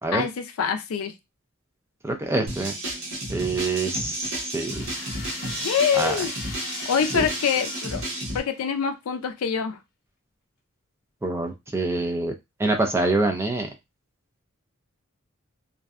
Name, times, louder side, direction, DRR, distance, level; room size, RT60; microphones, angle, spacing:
voice 1, 0.1-1.1 5.6-6.3 6.9-8.0 8.3-9.8, left 7 dB, 80° left, 8 dB, 0.4 m, -25 dB
voice 2, 2.0-2.7 3.3-4.9 5.9-6.2 7.1-7.3 11.2-13.7, right 2 dB, 10° right, 4 dB, 0.3 m, -26 dB
sound 1, 2.5-8.4, right 1 dB, 75° right, 1.0 m, -32 dB
sound 2, 4.7-8.8, left 4 dB, 50° left, 0.9 m, -39 dB
2.6 x 2.2 x 2.3 m, 0.22 s
head